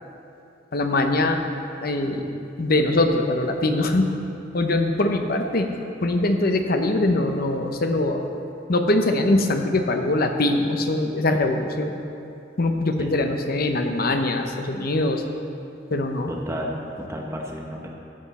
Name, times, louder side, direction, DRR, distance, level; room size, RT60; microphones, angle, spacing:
voice 1, 0.7-1.4 1.8-2.3 2.6-4.1 4.5-5.7 6.0-8.3 8.7-12.0 12.6-15.2 15.9-16.3, left 2 dB, 55° left, 5 dB, 0.8 m, -22 dB
voice 2, 16.3-17.9, equal, 15° right, -1 dB, 0.8 m, -32 dB
14.0 x 7.9 x 4.2 m, 2.7 s
head